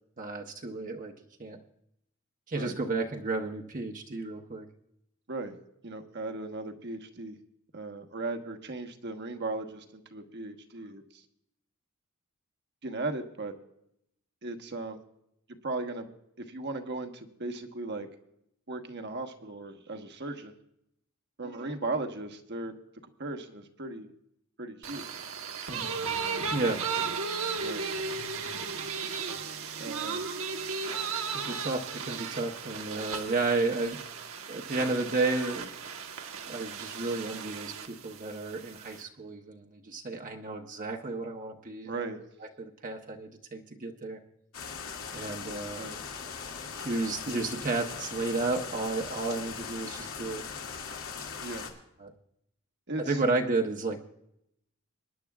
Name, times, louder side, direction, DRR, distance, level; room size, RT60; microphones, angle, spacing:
voice 1, 0.2-1.1 1.4-1.6 2.5-4.6 25.7-25.9 26.5-26.8 31.3-34.0 34.5-35.7 36.5-41.9 42.6-44.2 45.1-45.9 46.7-50.4 52.0-52.1 53.1-54.0, right 3 dB, 40° right, 2 dB, 0.9 m, -32 dB
voice 2, 5.8-7.4 7.7-11.2 12.8-13.5 14.4-15.0 15.6-16.1 16.4-18.1 18.7-20.5 21.4-22.7 23.2-24.1 24.6-25.0 27.6-27.8 29.8-30.3 41.8-42.2 45.7-46.0 51.4-51.7 52.9-53.2, right 2 dB, 55° right, 6 dB, 1.2 m, -37 dB
sound 1, 24.8-39.0, right 5 dB, 75° right, 1.2 m, -35 dB
sound 2, 44.5-51.7, left 6 dB, 85° left, 2.2 m, -40 dB
24.5 x 10.5 x 2.3 m, 0.78 s
head